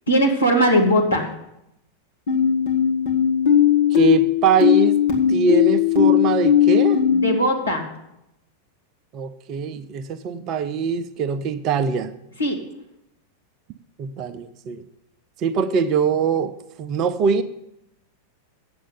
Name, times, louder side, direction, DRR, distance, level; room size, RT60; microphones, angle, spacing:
voice 1, 0.1-1.3 7.1-7.9 12.4-12.6, equal, 75° left, 2 dB, 1.8 m, -19 dB
sound 1, 2.3-7.3, left 9 dB, 60° left, 1.9 m, -18 dB
voice 2, 3.9-5.0 5.3-7.0 9.1-12.1 14.0-14.8 15.4-17.4, right 5 dB, 35° right, 12 dB, 0.5 m, -22 dB
8.5 x 7.5 x 6.9 m, 0.84 s
figure-of-eight pair, 90°, 0 cm